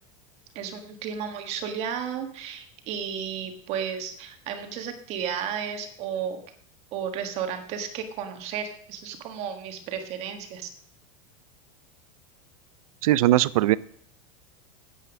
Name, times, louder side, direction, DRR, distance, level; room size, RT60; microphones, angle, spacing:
voice 1, 0.5-6.4 6.9-10.7, right 8 dB, 35° right, 6 dB, 1.5 m, -33 dB
voice 2, 13.0-13.8, right 15 dB, 85° right, 20 dB, 0.5 m, -19 dB
9.5 x 8.4 x 6.1 m, 0.62 s
supercardioid pair, 165°, 18 cm